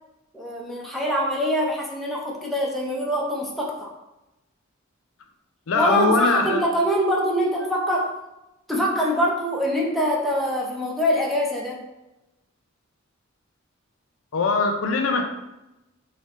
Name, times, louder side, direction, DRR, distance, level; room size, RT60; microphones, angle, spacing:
voice 1, 0.3-3.9 5.7-8.1 8.7-11.8, equal, ahead, -3 dB, 0.5 m, -24 dB
voice 2, 5.7-6.6 14.3-15.2, left 3 dB, 70° left, 4 dB, 0.5 m, -21 dB
3.3 x 2.4 x 3.1 m, 0.95 s
head